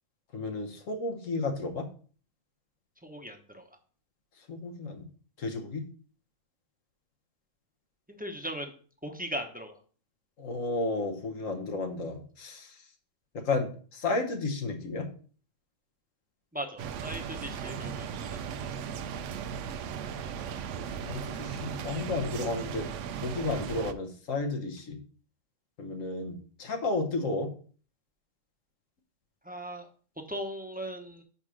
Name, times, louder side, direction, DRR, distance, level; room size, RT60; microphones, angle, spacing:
voice 1, 0.3-1.9 4.5-5.0 5.4-5.8 10.4-12.7 13.3-15.1 21.0-22.9 23.2-25.0 25.8-27.5, left 3 dB, 80° left, 5 dB, 1.5 m, -32 dB
voice 2, 3.0-3.6 8.1-8.7 9.0-9.8 16.5-18.4 29.4-29.9 30.3-31.2, equal, 10° right, 5 dB, 0.8 m, -38 dB
sound 1, 16.8-23.9, right 7 dB, 75° right, 0.9 m, -37 dB
5.4 x 4.9 x 6.3 m, 0.42 s
omnidirectional pair, 1.3 m